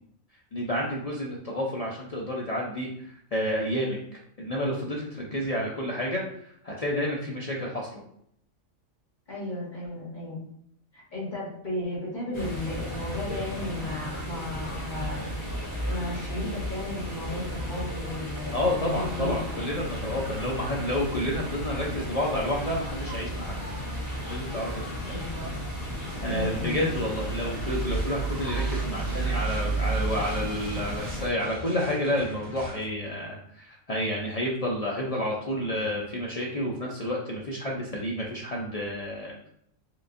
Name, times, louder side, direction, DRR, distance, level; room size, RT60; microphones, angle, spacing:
voice 1, 0.5-8.0 18.5-23.6 24.3-24.9 26.2-39.5, left 1 dB, 80° left, -3 dB, 0.3 m, -30 dB
voice 2, 9.3-10.4 10.9-15.3 15.9-19.4 25.0-25.6 26.2-26.8, left 1 dB, 35° left, -6 dB, 1.5 m, -34 dB
sound 1, 12.3-31.3, right 1 dB, 55° left, 1.5 m, -33 dB
sound 2, 27.3-32.9, right 1 dB, 85° right, 1.5 m, -43 dB
4.5 x 2.5 x 2.5 m, 0.70 s
omnidirectional pair, 1.4 m